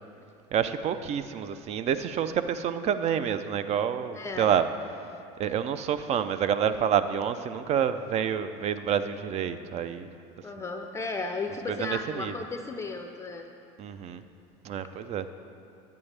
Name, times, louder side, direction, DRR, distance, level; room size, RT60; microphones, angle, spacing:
voice 1, 0.5-4.7 5.4-10.1 11.7-12.3 13.8-14.2 14.6-15.2, right 8 dB, 40° right, 11 dB, 0.5 m, -28 dB
voice 2, 4.1-4.5 10.4-13.4, left 3 dB, 15° left, 4 dB, 0.5 m, -34 dB
10.5 x 8.7 x 3.3 m, 2.8 s
supercardioid pair, 100°, 16 cm